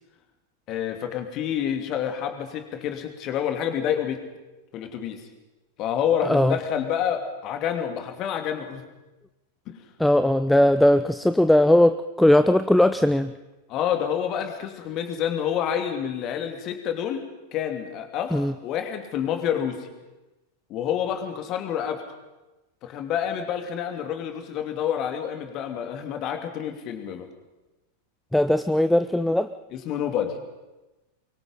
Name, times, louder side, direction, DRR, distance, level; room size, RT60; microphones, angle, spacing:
voice 1, 0.7-4.2 4.7-5.2 5.8-8.8 9.7-9.8 13.7-17.2 17.5-19.9 20.7-22.1 22.8-27.3 29.7-30.4, left 9 dB, 35° left, 6 dB, 2.9 m, -28 dB
voice 2, 6.2-6.6 10.0-13.3 18.3-18.5 28.3-29.5, left 1 dB, 5° left, 11 dB, 0.6 m, -19 dB
24.0 x 23.5 x 5.7 m, 1.1 s
figure-of-eight pair, 90°, 0 cm